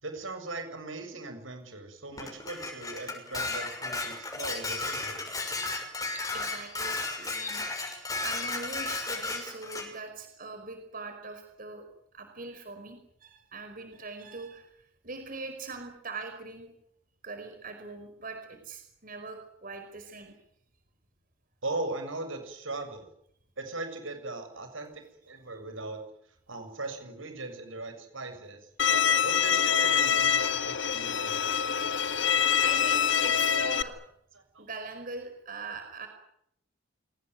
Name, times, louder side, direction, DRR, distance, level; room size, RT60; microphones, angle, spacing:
voice 1, 0.0-5.2 21.6-23.1 23.6-26.0 26.5-28.6 29.2-31.4 34.3-34.7, right 2 dB, 80° right, 7 dB, 6.9 m, -39 dB
Dishes pots and pans, 2.2-9.9, left 3 dB, 20° left, 6.2 m, -34 dB
voice 2, 6.1-7.6 8.2-11.8 12.1-14.7 15.0-16.7 17.2-20.3 32.6-34.0 34.6-36.1, right 3 dB, 45° right, 6 dB, 5.1 m, -42 dB
Bowed string instrument, 28.8-33.8, left 7 dB, 65° left, 1.6 m, -25 dB
27.5 x 19.0 x 9.5 m, 0.73 s
head